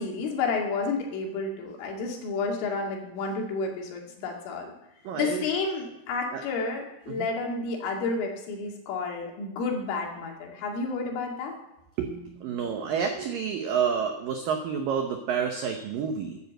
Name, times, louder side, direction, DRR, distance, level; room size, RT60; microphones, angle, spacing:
voice 1, 0.0-4.7 5.1-11.5, left 4 dB, 85° left, 0 dB, 4.9 m, -31 dB
voice 2, 5.0-5.5 6.3-6.4 7.1-7.3 12.0-16.4, right 7 dB, 90° right, 4 dB, 1.9 m, -29 dB
11.5 x 10.0 x 7.7 m, 0.89 s
omnidirectional pair, 5.6 m